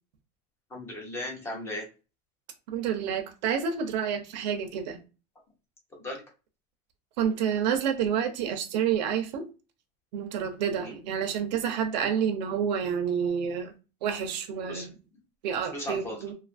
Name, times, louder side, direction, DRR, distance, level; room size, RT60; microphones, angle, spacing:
voice 1, 0.7-1.9 6.0-6.2 10.7-11.0 14.7-14.9 15.7-16.2, left 1 dB, 10° left, 0.7 m, -36 dB
voice 2, 2.7-5.0 7.2-9.4 10.1-13.7 14.0-14.9 15.4-16.3, right 8 dB, 90° right, 0.6 m, -29 dB
2.6 x 2.4 x 2.5 m
supercardioid pair, 170°, 21 cm